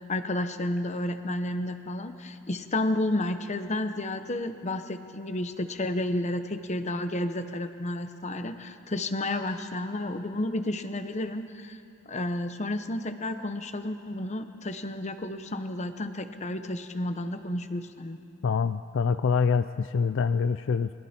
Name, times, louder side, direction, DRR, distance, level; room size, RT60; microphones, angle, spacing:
voice 1, 0.1-11.8 12.1-18.2, left 1 dB, 35° left, 9 dB, 1.0 m, -31 dB
voice 2, 18.4-20.9, left 5 dB, 65° left, 12 dB, 0.4 m, -25 dB
29.0 x 22.0 x 4.4 m, 2.7 s
head